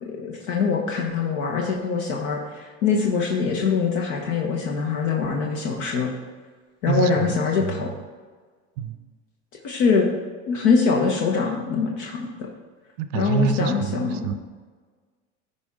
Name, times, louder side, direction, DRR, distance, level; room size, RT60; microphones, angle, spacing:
voice 1, 0.0-6.1 6.8-7.9 9.6-10.1 10.5-12.3 13.1-14.2, left 5 dB, 80° left, 0 dB, 1.1 m, -23 dB
voice 2, 6.9-7.9 8.8-9.0 13.0-14.3, right 7 dB, 85° right, 11 dB, 0.7 m, -27 dB
11.0 x 4.5 x 3.7 m, 1.5 s
supercardioid pair, 90°, 37 cm